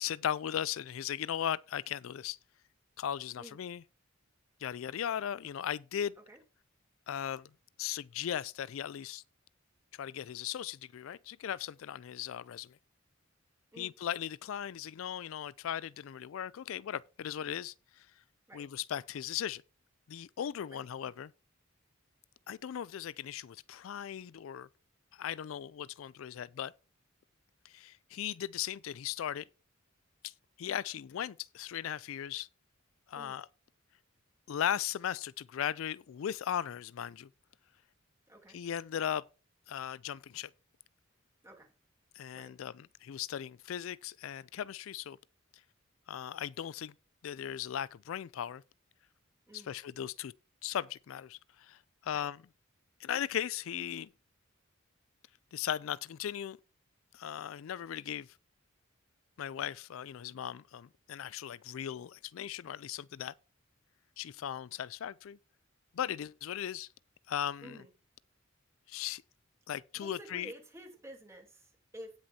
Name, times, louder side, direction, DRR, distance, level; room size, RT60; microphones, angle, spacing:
voice 1, 0.0-2.4 3.0-3.8 4.6-6.1 7.1-7.5 7.8-9.2 9.9-12.8 13.8-18.1 18.5-19.6 20.1-21.3 22.5-24.7 25.1-26.7 27.6-29.4 30.2-30.3 30.6-32.5 33.1-33.5 34.5-37.3 38.5-39.2 39.7-40.5 42.2-45.2 46.1-46.9 47.2-48.6 49.5-50.3 50.6-52.4 53.0-54.1 55.5-56.6 57.1-58.3 59.4-63.3 64.2-65.4 65.9-66.9 67.3-67.8 68.9-69.2 69.7-70.5, left 9 dB, 75° left, 0.4 m, -37 dB
voice 2, 38.3-38.6 41.4-41.7 42.3-42.5 49.5-49.7 52.1-52.3 67.6-67.9 69.9-72.1, right 1 dB, 15° right, 2.9 m, -50 dB
17.5 x 6.3 x 2.7 m
head